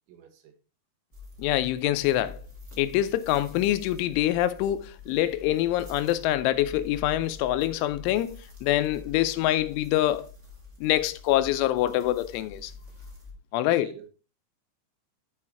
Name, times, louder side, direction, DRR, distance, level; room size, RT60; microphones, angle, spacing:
voice 1, 0.1-0.5 3.2-3.3 13.8-14.1, right 8 dB, 75° right, 3.6 m, -47 dB
sound 1, 1.1-13.3, left 3 dB, 35° right, 1.1 m, -46 dB
voice 2, 1.4-2.4 2.8-8.4 8.6-10.3 10.8-12.7 13.5-13.9, left 14 dB, 85° left, 3.0 m, -25 dB
12.0 x 4.7 x 4.2 m
omnidirectional pair, 5.6 m